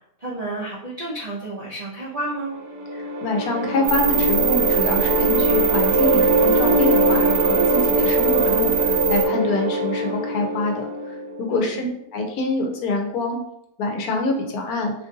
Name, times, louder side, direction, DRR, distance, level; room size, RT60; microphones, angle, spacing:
voice 1, 0.2-2.6 11.5-11.8, right 2 dB, 45° right, -8 dB, 0.5 m, -31 dB
sound 1, 2.5-11.6, right 1 dB, 85° right, 1.2 m, -22 dB
voice 2, 2.9-11.9 12.1-13.4 13.8-14.9, left 2 dB, 70° left, 2 dB, 1.1 m, -26 dB
sound 2, 3.8-9.2, right 7 dB, 65° right, 0.8 m, -24 dB
3.0 x 2.6 x 3.6 m, 0.76 s
omnidirectional pair, 1.7 m